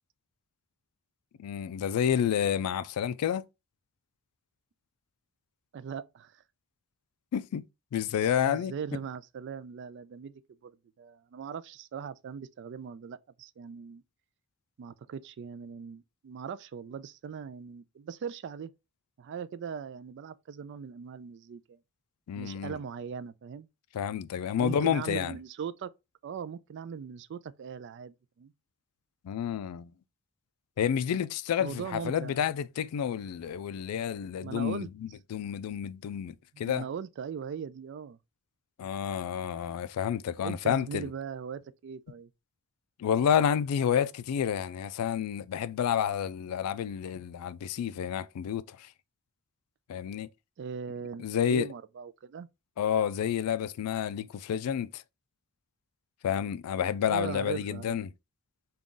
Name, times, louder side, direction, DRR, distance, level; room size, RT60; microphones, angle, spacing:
voice 1, 1.4-3.4 7.3-7.6 7.9-8.7 22.3-22.8 23.9-25.3 29.2-29.9 30.8-36.8 38.8-41.1 43.0-48.9 49.9-50.3 51.2-51.7 52.8-55.0 56.2-58.1, left 8 dB, 85° left, 0.3 m, -30 dB
voice 2, 5.7-6.4 8.5-10.3 10.6-14.0 14.8-18.7 19.2-21.8 22.3-23.7 24.6-25.9 26.2-28.5 31.6-32.4 34.4-34.9 36.5-38.2 40.4-42.3 50.6-52.5 57.1-58.0, right 7 dB, 50° right, 0.3 m, -40 dB
3.7 x 2.3 x 3.7 m
head